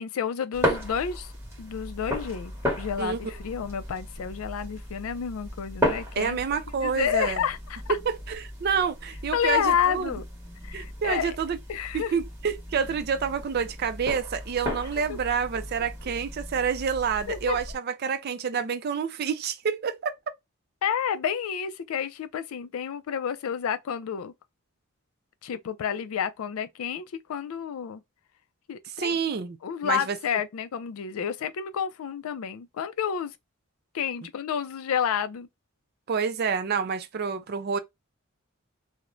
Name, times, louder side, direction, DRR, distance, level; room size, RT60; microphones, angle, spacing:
voice 1, 0.0-1.3 1.6-7.8 9.3-10.2 10.6-11.4 11.7-12.1 15.1-15.2 17.3-17.6 20.8-24.3 25.4-28.0 28.7-29.2 29.6-33.4 33.9-35.5, left 8 dB, 80° left, 0.4 m, -30 dB
sound 1, 0.5-17.8, equal, 15° right, 0.9 m, -35 dB
voice 2, 6.2-7.4 8.3-10.1 10.7-11.6 11.9-20.1 29.0-29.6 29.8-30.2 36.1-37.8, right 6 dB, 50° right, 0.4 m, -28 dB
2.4 x 2.1 x 3.0 m
head